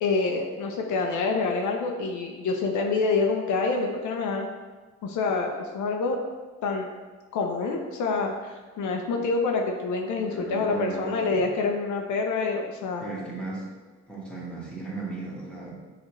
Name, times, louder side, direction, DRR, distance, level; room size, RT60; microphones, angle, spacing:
voice 1, 0.0-4.5 5.0-6.2 6.6-6.9 7.3-13.0, left 4 dB, 75° left, 2 dB, 0.6 m, -27 dB
voice 2, 10.1-11.5 13.0-13.7 14.1-15.8, right 3 dB, 5° left, -6 dB, 1.4 m, -36 dB
6.4 x 2.6 x 3.0 m, 1.3 s
cardioid pair, 90°, 30 cm